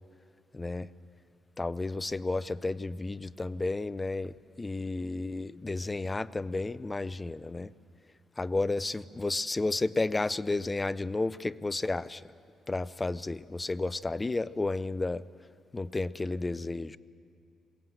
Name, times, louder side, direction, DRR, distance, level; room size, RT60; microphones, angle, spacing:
voice 1, 0.5-0.9 1.6-7.7 8.4-12.2 12.7-15.2 15.7-17.0, left 2 dB, 15° left, 16 dB, 0.4 m, -32 dB
21.5 x 17.0 x 7.8 m, 2.7 s
cardioid pair, 135°, 0 cm